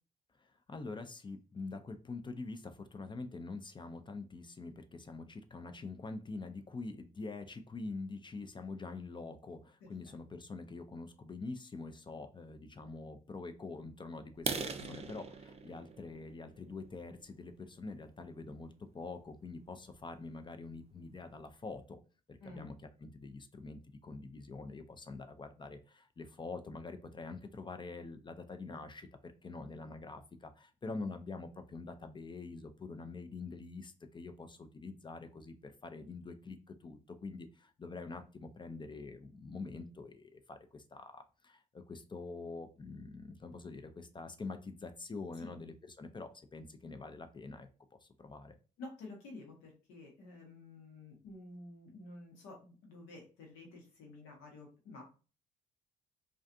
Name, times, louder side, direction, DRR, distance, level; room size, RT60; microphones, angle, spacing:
voice 1, 0.4-22.0 22.3-48.5, left 3 dB, 25° left, 8 dB, 0.4 m, -45 dB
sound 1, 14.3-18.1 18.6-18.8 19.3-19.4 19.8-20.0 20.3-20.4 20.8-20.9 21.2-21.7, right 5 dB, 35° right, 0.4 m, -42 dB
voice 2, 14.7-15.1 22.4-22.7 45.4-45.6 48.8-55.0, left 2 dB, 80° left, 0 dB, 1.0 m, -51 dB
2.4 x 2.3 x 2.5 m, 0.34 s
hypercardioid pair, 50°, 19 cm